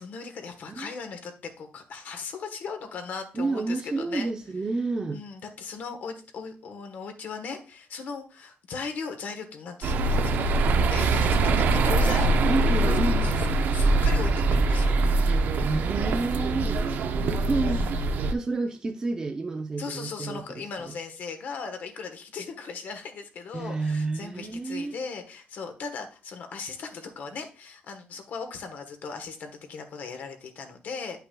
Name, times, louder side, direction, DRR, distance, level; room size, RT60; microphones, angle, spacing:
voice 1, 0.0-4.3 5.1-12.3 13.2-13.5 13.7-15.0 17.6-18.2 19.8-31.2, left 5 dB, 60° left, 1.2 m, -38 dB
voice 2, 3.3-5.2 12.5-13.4 15.6-17.9 18.3-20.9 23.5-24.9, right 3 dB, 20° right, 0.5 m, -30 dB
sound 1, 9.8-18.3, right 2 dB, 65° right, 0.6 m, -23 dB
10.0 x 5.7 x 2.3 m
cardioid pair, 155°, 3 cm